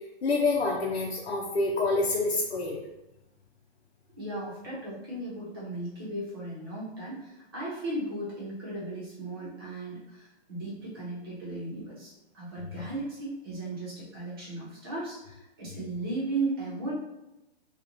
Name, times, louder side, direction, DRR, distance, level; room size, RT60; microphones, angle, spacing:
voice 1, 0.2-2.8, left 3 dB, 80° left, -2 dB, 0.8 m, -27 dB
voice 2, 4.2-16.9, right 2 dB, 20° right, -7 dB, 0.9 m, -36 dB
4.6 x 2.4 x 2.5 m, 0.93 s
hypercardioid pair, 180°, 32 cm